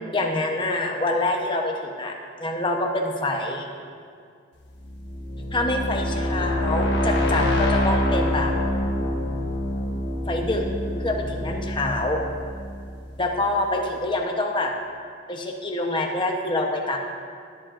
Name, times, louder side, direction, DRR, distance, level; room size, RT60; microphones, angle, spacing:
voice 1, 0.1-3.7 5.5-8.5 10.3-10.7 11.0-12.2 13.2-14.7 15.3-17.0, left 2 dB, 25° left, 2 dB, 0.9 m, -26 dB
sound 1, 4.7-13.5, left 1 dB, 55° left, 1.2 m, -26 dB
21.5 x 7.4 x 2.6 m, 2.2 s
head